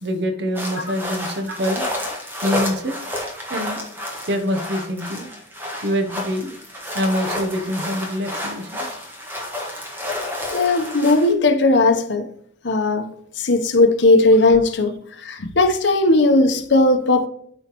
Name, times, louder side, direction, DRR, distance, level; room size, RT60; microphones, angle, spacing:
voice 1, 0.0-1.9 2.4-2.9 3.5-3.8 4.2-5.3 5.8-6.5 6.9-8.9, equal, 60° right, 0.9 m, -25 dB
sound 1, 0.5-11.3, left 1 dB, 10° right, 1.5 m, -30 dB
voice 2, 10.5-12.3 12.6-13.1 13.4-17.3, left 2 dB, 70° left, 0.9 m, -17 dB
13.0 x 4.4 x 3.1 m
head